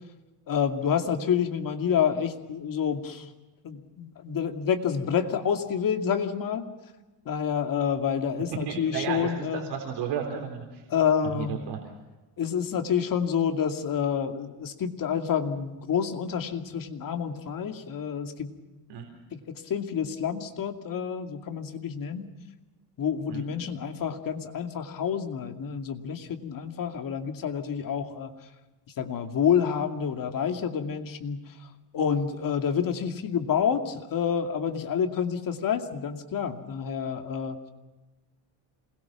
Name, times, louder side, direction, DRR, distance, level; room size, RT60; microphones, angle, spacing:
voice 1, 0.5-3.3 3.6-6.7 7.3-9.6 10.9-11.6 12.4-18.5 19.3-22.3 23.0-28.3 29.0-31.4 31.9-37.6, left 7 dB, 50° left, 5 dB, 2.6 m, -28 dB
voice 2, 8.7-10.8 11.3-11.8 18.9-19.1 23.3-23.5, right 7 dB, 70° right, 2 dB, 4.0 m, -33 dB
27.5 x 21.5 x 6.0 m, 1.2 s
cardioid pair, 135°, 42 cm